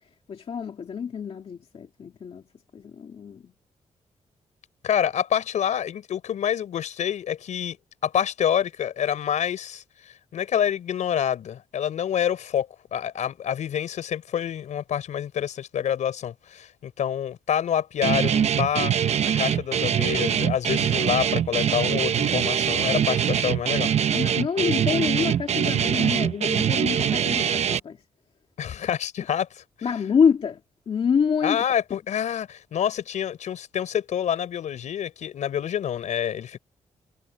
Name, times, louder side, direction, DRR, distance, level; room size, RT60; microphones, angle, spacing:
voice 1, 0.3-2.4 2.7-3.5 24.1-28.0 29.8-30.6 30.9-31.6, left 6 dB, 50° left, 2.1 m, -26 dB
voice 2, 4.8-7.8 8.0-9.8 10.3-18.9 19.2-23.9 28.6-29.6 31.4-36.6, left 9 dB, 85° left, 4.7 m, -27 dB
Guitar, 18.0-27.8, right 9 dB, 65° right, 0.9 m, -23 dB
wide cardioid pair, 135°, 12 cm